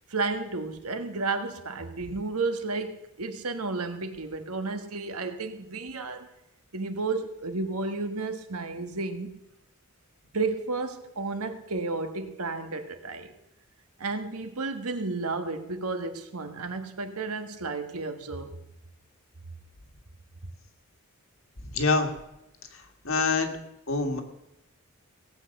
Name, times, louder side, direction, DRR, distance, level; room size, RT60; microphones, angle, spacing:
voice 1, 0.1-6.3 6.7-9.3 10.3-13.3 14.0-18.6, right 3 dB, 90° right, 7 dB, 1.6 m, -32 dB
voice 2, 21.7-22.1 23.0-23.6 23.9-24.2, left 3 dB, 65° left, 5 dB, 1.9 m, -25 dB
17.5 x 8.3 x 6.6 m, 0.88 s
head